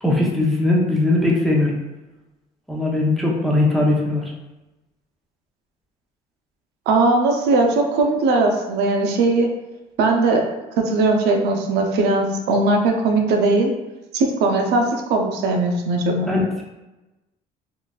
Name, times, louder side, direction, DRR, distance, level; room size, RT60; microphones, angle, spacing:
voice 1, 0.0-1.7 2.7-4.3 16.2-16.4, left 2 dB, ahead, -4 dB, 0.7 m, -19 dB
voice 2, 6.9-9.5 10.0-10.4 10.8-13.7 14.1-16.3, right 3 dB, 85° right, 3 dB, 0.6 m, -19 dB
3.8 x 2.5 x 2.3 m, 1.0 s
cardioid pair, 110°, 17 cm